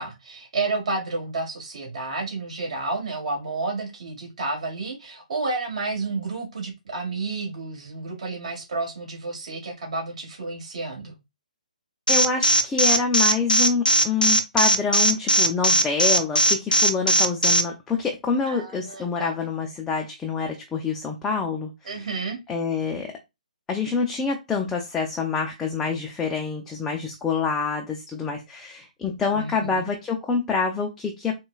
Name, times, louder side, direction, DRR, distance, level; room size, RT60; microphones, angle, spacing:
voice 1, 0.0-11.1 18.5-19.3 21.8-22.4 29.3-29.8, right 3 dB, 50° right, 1.5 m, -31 dB
Alarm, 12.1-17.6, equal, 90° left, 0.5 m, -18 dB
voice 2, 12.1-22.1 22.5-23.2 23.7-31.4, left 5 dB, 10° left, 0.4 m, -26 dB
4.1 x 2.2 x 2.3 m
figure-of-eight pair, 135°, 5 cm